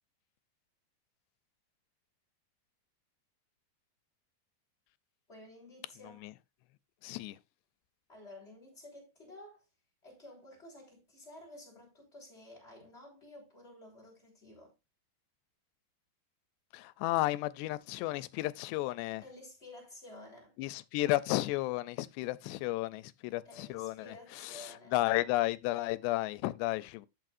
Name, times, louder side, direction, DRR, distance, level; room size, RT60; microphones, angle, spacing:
voice 1, 5.3-6.3 8.1-9.6 10.0-14.7 19.2-20.5 23.4-24.9, left 1 dB, 15° left, 5.1 m, -52 dB
voice 2, 7.0-7.4 16.7-19.2 20.6-27.1, left 18 dB, 90° left, 2.8 m, -33 dB
14.0 x 6.3 x 2.6 m
omnidirectional pair, 4.8 m